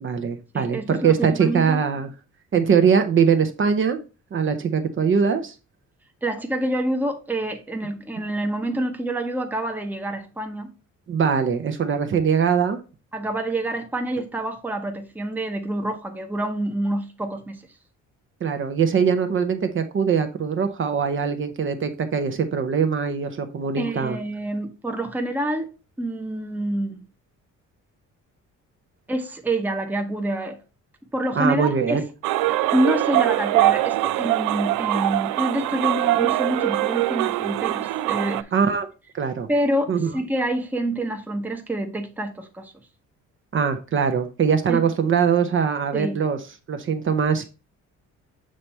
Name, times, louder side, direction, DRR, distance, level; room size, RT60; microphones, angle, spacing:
voice 1, 0.0-2.1 2.5-4.0 4.3-5.5 11.1-12.8 18.4-24.2 31.4-32.0 38.5-38.9 39.1-39.5 39.9-40.1 43.5-46.4 46.7-47.4, right 6 dB, 40° right, 0.8 m, -22 dB
voice 2, 0.5-1.8 6.2-10.7 13.1-17.6 23.8-25.7 26.0-27.0 29.1-30.6 31.1-32.0 32.5-38.5 39.5-42.7 44.7-44.9 45.9-46.2, right 1 dB, 5° right, 0.8 m, -27 dB
sound 1, 32.2-38.4, right 16 dB, 85° right, 0.5 m, -22 dB
7.5 x 3.4 x 4.2 m
cardioid pair, 125°, 31 cm